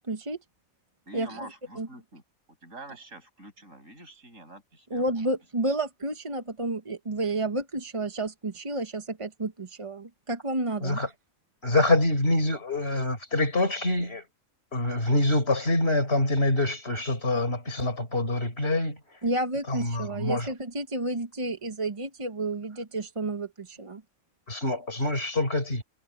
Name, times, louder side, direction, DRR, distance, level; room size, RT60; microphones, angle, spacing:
voice 1, 0.1-0.4 1.1-1.4 1.8-1.9 4.9-11.0 19.2-24.0, right 2 dB, 25° right, 1.0 m, -31 dB
voice 2, 1.1-2.2 2.6-5.3, right 1 dB, 65° right, 8.2 m, -46 dB
voice 3, 11.6-14.2 14.7-19.0 19.7-20.5 24.5-25.8, left 2 dB, 45° left, 5.0 m, -25 dB
omnidirectional pair, 1.5 m